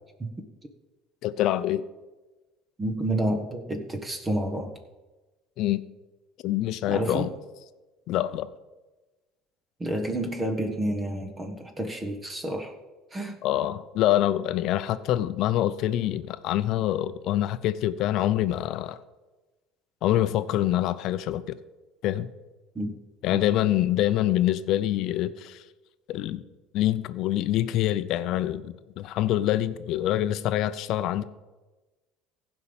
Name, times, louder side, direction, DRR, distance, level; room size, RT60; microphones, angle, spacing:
voice 1, 1.2-1.8 5.6-5.8 6.4-7.3 8.1-8.5 13.4-19.0 20.0-21.6 22.0-22.3 23.2-25.6 26.1-26.4 26.7-31.2, left 13 dB, 60° left, 14 dB, 0.7 m, -25 dB
voice 2, 2.8-4.7 6.9-7.3 9.8-12.7 13.1-13.4 22.7-22.9 23.3-23.4, right 1 dB, 20° right, 5 dB, 1.5 m, -29 dB
15.5 x 5.4 x 7.2 m, 1.2 s
supercardioid pair, 110°, 0 cm